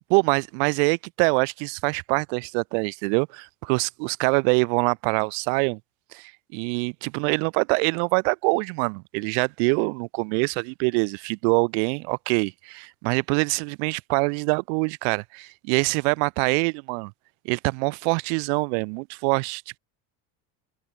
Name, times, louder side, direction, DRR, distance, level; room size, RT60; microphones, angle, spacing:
voice 1, 0.1-5.8 6.1-17.1 17.4-19.8, right 39 dB, 85° right, 1.5 m, -24 dB
cardioid pair, 165°, 32 cm